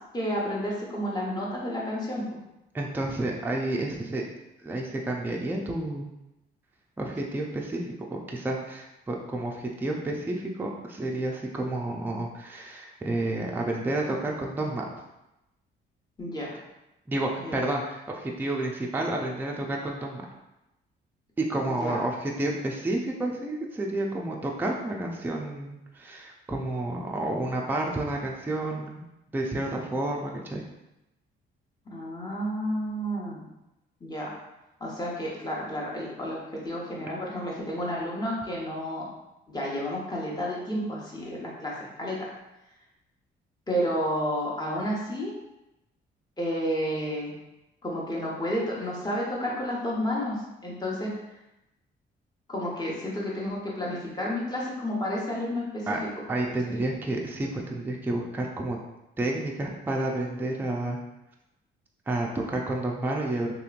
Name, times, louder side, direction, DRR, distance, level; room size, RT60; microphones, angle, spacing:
voice 1, 0.1-2.4 16.2-16.6 17.4-17.6 21.8-22.0 31.9-33.5 34.0-34.3 34.8-39.1 39.5-42.3 43.7-45.3 46.4-47.3 47.8-51.1 52.5-56.0 56.7-56.8, equal, 20° left, -4 dB, 1.0 m, -31 dB
voice 2, 2.7-4.2 4.6-6.1 7.0-14.8 17.1-20.2 21.4-29.0 29.3-30.6 55.9-56.0 56.3-58.8 59.2-61.0 62.1-63.5, right 2 dB, 10° right, -1 dB, 0.4 m, -30 dB
3.0 x 2.9 x 2.5 m, 0.93 s
cardioid pair, 90°, 20 cm